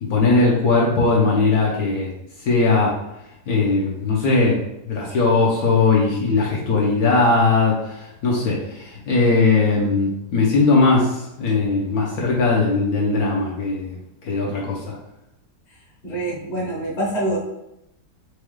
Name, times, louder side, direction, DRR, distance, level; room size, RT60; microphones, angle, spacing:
voice 1, 0.0-2.1 2.4-2.9 3.5-4.6 4.9-14.0 14.2-15.0, left 3 dB, 65° left, -3 dB, 1.2 m, -19 dB
voice 2, 16.0-17.4, right 1 dB, 35° left, -4 dB, 0.8 m, -25 dB
4.7 x 2.3 x 3.1 m, 0.85 s
omnidirectional pair, 1.8 m